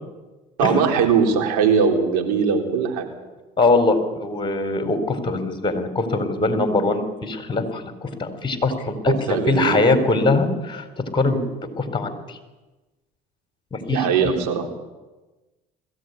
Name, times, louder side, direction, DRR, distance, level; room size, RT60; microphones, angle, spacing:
voice 1, 0.6-3.1 9.1-9.8 13.9-14.7, right 6 dB, 85° right, 2 dB, 3.9 m, -20 dB
voice 2, 3.6-10.8 11.1-12.4 13.7-14.3, left 2 dB, 25° left, 7 dB, 4.2 m, -22 dB
21.0 x 15.5 x 9.8 m, 1.2 s
supercardioid pair, 80°, 21 cm